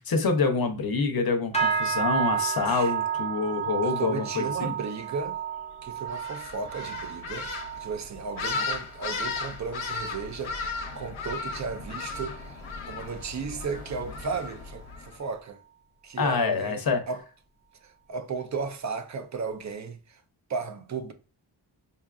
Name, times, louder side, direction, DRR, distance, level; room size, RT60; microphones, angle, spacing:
voice 1, 0.0-4.7 8.5-8.6 16.2-17.0, left 4 dB, 50° left, 0.6 m, -26 dB
sound 1, 1.5-11.1 11.4-11.8 12.2-12.6 13.1-13.2, right 7 dB, 15° left, 0.5 m, -32 dB
voice 2, 3.8-5.4 5.8-7.5 7.8-12.6 12.9-15.6 16.0-17.2 17.8-20.2 20.5-21.1, right 5 dB, 40° right, 0.5 m, -35 dB
sound 2, 6.1-15.2, left 4 dB, 85° left, 0.7 m, -36 dB
5.3 x 2.3 x 2.3 m
wide cardioid pair, 125°, 48 cm